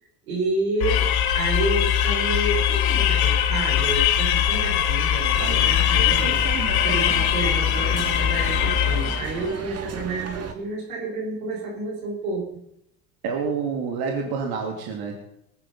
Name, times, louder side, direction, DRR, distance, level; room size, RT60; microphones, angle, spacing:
voice 1, 0.3-12.5, right 2 dB, 85° right, 0 dB, 4.7 m, -30 dB
sound 1, 0.8-9.4, left 10 dB, 65° left, 1.7 m, -21 dB
sound 2, 5.4-10.5, right 5 dB, 35° right, 2.1 m, -34 dB
voice 2, 13.2-15.1, right 5 dB, 60° right, 1 dB, 2.9 m, -27 dB
20.0 x 9.1 x 5.6 m, 0.78 s
hypercardioid pair, 75°, 42 cm